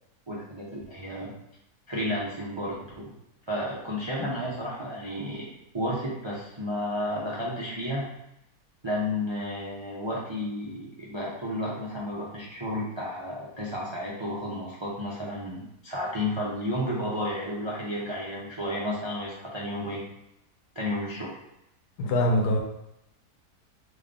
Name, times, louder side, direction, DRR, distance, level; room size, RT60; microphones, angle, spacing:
voice 1, 0.3-1.3 1.9-3.2 3.5-5.4 5.7-8.1 8.8-20.0 20.7-21.4, left 1 dB, 35° right, -5 dB, 0.4 m, -32 dB
voice 2, 22.0-22.6, left 1 dB, 90° left, 2 dB, 1.3 m, -23 dB
3.5 x 3.1 x 3.8 m, 0.82 s
omnidirectional pair, 1.7 m